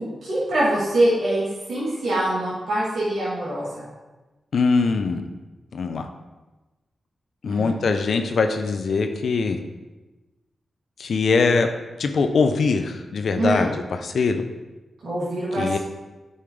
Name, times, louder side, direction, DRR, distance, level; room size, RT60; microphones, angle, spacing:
voice 1, 0.0-3.8 7.5-7.7 13.3-13.7 15.0-15.8, right 1 dB, 80° right, -10 dB, 2.5 m, -24 dB
voice 2, 4.5-5.3 5.7-6.1 7.4-9.6 11.0-11.7 12.0-14.4 15.6-15.8, left 4 dB, 70° left, 6 dB, 0.6 m, -22 dB
8.6 x 5.6 x 3.3 m, 1.1 s
cardioid pair, 50°, 0 cm